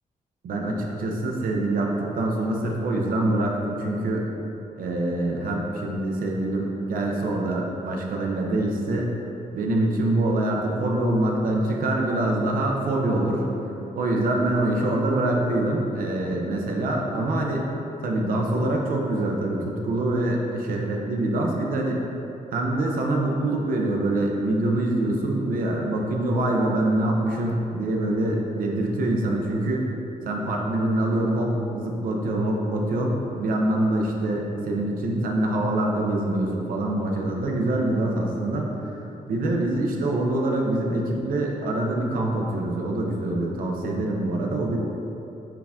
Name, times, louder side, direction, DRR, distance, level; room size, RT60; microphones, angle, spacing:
voice 1, 0.4-4.3 4.8-9.1 9.5-13.5 14.0-17.7 18.0-22.0 22.5-29.9 30.3-38.7 39.3-44.8, right 1 dB, 70° right, 0 dB, 0.5 m, -25 dB
4.7 x 2.5 x 3.4 m, 3.0 s
wide cardioid pair, 175°, 15 cm